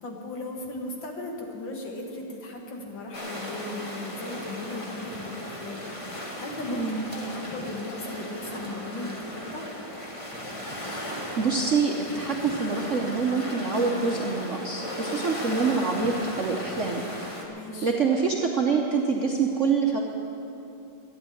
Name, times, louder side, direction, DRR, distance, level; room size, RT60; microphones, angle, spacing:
voice 1, 0.0-9.7 17.5-17.9, left 2 dB, 65° left, 1 dB, 2.3 m, -37 dB
sound 1, 3.1-17.5, equal, 15° left, 1.4 m, -36 dB
voice 2, 6.7-7.1 11.3-17.0 17.8-20.0, right 5 dB, 50° right, -1 dB, 1.0 m, -26 dB
12.0 x 10.0 x 9.3 m, 2.8 s
omnidirectional pair, 2.3 m